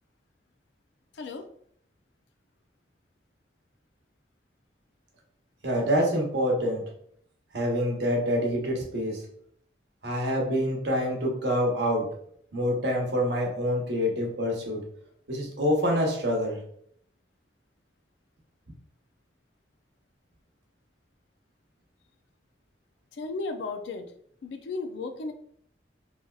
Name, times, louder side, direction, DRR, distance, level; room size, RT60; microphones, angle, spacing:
voice 1, 1.1-1.4 23.1-24.1 24.4-25.3, left 3 dB, 80° left, 7 dB, 0.4 m, -34 dB
voice 2, 5.6-6.9 7.5-9.2 10.0-12.1 12.5-14.8 15.3-16.6, equal, 75° right, -1 dB, 0.9 m, -26 dB
3.3 x 2.7 x 2.3 m, 0.64 s
head